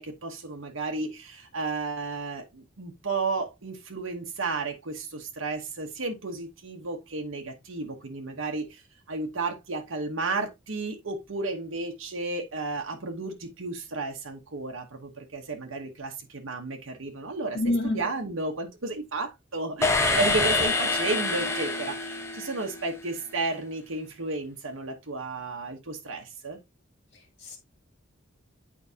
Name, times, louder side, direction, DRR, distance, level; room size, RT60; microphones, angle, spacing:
voice 1, 0.0-8.8 9.1-26.6, right 3 dB, 80° right, 1.0 m, -33 dB
voice 2, 17.5-18.0 27.4-27.6, left 1 dB, 55° left, 2.6 m, -26 dB
sound 1, 19.8-23.0, left 3 dB, 15° left, 1.0 m, -26 dB
8.7 x 4.7 x 2.7 m
head